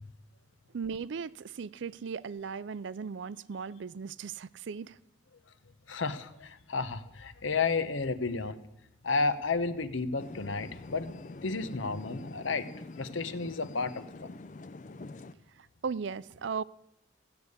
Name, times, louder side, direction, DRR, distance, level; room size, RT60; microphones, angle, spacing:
voice 1, 0.7-5.0 15.8-16.6, right 5 dB, 75° right, 0.4 m, -37 dB
voice 2, 5.9-8.6 9.0-12.7 13.0-14.3, left 4 dB, 90° left, 1.0 m, -32 dB
sound 1, 10.2-15.3, left 2 dB, 40° left, 0.4 m, -45 dB
15.5 x 6.9 x 9.6 m
head